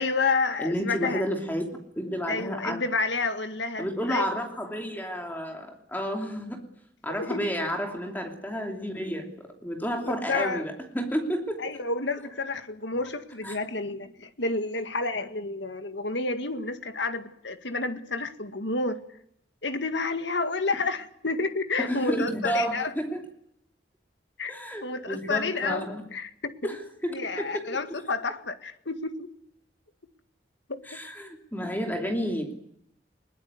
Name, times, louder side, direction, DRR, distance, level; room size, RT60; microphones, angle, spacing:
voice 1, 0.0-1.3 2.3-4.3 7.1-7.5 10.0-10.7 11.6-19.0 19.6-22.9 24.4-24.5 24.8-26.7 27.1-29.3 30.7-30.8, left 3 dB, 75° left, 8 dB, 1.9 m, -30 dB
voice 2, 0.6-2.8 3.8-6.6 7.0-11.6 13.4-13.5 21.8-23.2 24.5-26.0 26.6-27.7 30.9-32.5, equal, 10° left, 3 dB, 2.8 m, -31 dB
21.5 x 19.5 x 9.7 m, 0.72 s
head